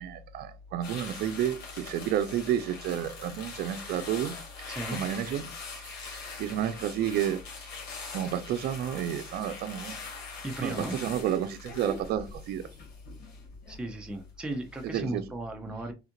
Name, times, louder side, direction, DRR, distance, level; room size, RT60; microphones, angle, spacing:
voice 1, 0.0-7.7 8.1-10.0 10.6-12.6 14.8-15.2, right 10 dB, 70° right, 0.5 m, -31 dB
sound 1, 0.8-14.2 14.5-14.8, left 4 dB, 75° left, 1.6 m, -43 dB
voice 2, 4.7-5.0 10.4-11.0 13.7-15.9, right 1 dB, 5° right, 0.6 m, -36 dB
3.4 x 2.4 x 2.9 m
cardioid pair, 110°, 17 cm